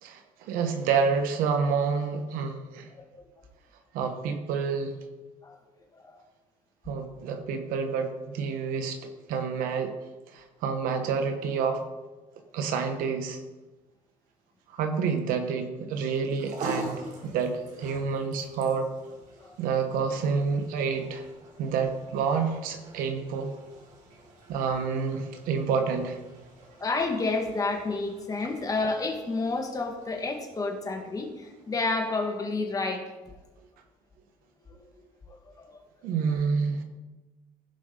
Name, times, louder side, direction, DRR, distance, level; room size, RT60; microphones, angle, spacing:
voice 1, 0.0-2.9 3.9-4.9 6.9-9.0 9.3-9.9 10.3-11.8 12.5-13.4 14.7-18.9 19.6-21.2 21.6-23.6 24.5-26.2 36.0-36.8, right 5 dB, 85° right, 6 dB, 1.2 m, -28 dB
voice 2, 2.9-3.2 5.4-5.5 6.0-6.2 19.4-19.5 26.6-33.3 34.7-34.9 35.6-35.8, left 3 dB, 25° left, 3 dB, 1.6 m, -30 dB
sound 1, 16.1-32.6, right 2 dB, 65° right, 2.9 m, -45 dB
15.5 x 5.4 x 3.9 m, 1.2 s
cardioid pair, 115°, 14 cm